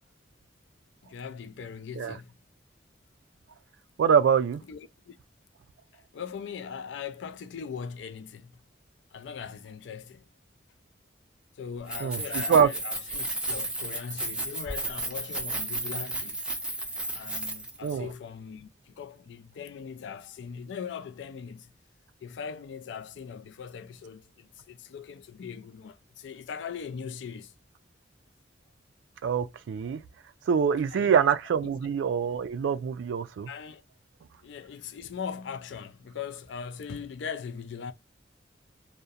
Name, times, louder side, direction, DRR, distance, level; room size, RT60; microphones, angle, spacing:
voice 1, 1.0-2.4 4.7-5.2 5.9-8.6 9.1-10.2 11.5-16.4 17.1-21.7 22.2-27.5 30.9-31.2 31.6-31.7 33.5-33.8 34.4-37.9, left 6 dB, 80° left, 0.3 m, -40 dB
voice 2, 4.0-4.6 12.0-12.7 17.8-18.1 29.2-30.0 30.5-33.5, right 7 dB, 85° right, 0.3 m, -24 dB
Keys jangling, 11.8-17.9, right 2 dB, 5° right, 0.5 m, -33 dB
2.7 x 2.1 x 2.3 m
head